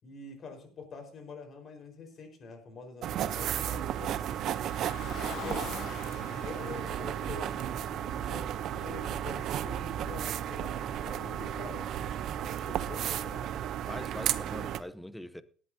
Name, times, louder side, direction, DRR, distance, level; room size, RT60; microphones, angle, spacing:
voice 1, 0.0-4.7 5.4-5.7 6.1-11.9 12.4-13.5, left 4 dB, 40° left, 4.6 m, -46 dB
sound 1, 3.0-14.8, right 10 dB, 55° right, 0.7 m, -34 dB
Car, 4.3-8.7, left 12 dB, 55° left, 0.5 m, -46 dB
voice 2, 5.1-5.9 13.9-15.4, left 1 dB, 5° left, 0.7 m, -43 dB
sound 2, 7.0-13.4, left 2 dB, 80° left, 4.0 m, -55 dB
18.0 x 11.5 x 2.8 m
cardioid pair, 140°, 0 cm